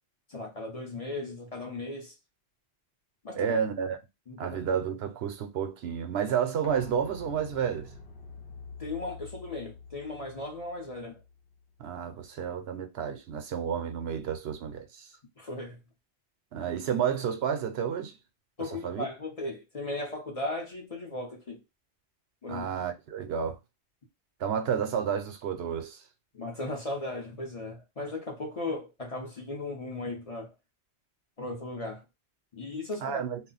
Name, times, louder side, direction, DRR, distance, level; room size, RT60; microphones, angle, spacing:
voice 1, 0.3-2.1 3.2-3.6 4.3-4.6 8.8-11.2 15.4-15.8 18.6-21.6 22.4-22.7 26.3-30.5 31.4-32.0 32.5-33.2, left 2 dB, 40° left, 0.7 m, -36 dB
voice 2, 3.3-4.0 4.4-7.9 11.8-15.1 16.5-18.2 18.8-19.1 22.5-23.6 24.4-26.0 33.0-33.4, right 8 dB, 70° right, 0.8 m, -31 dB
sound 1, 6.6-12.3 12.6-12.7, left 3 dB, 65° left, 0.9 m, -47 dB
2.4 x 2.1 x 3.8 m
omnidirectional pair, 1.1 m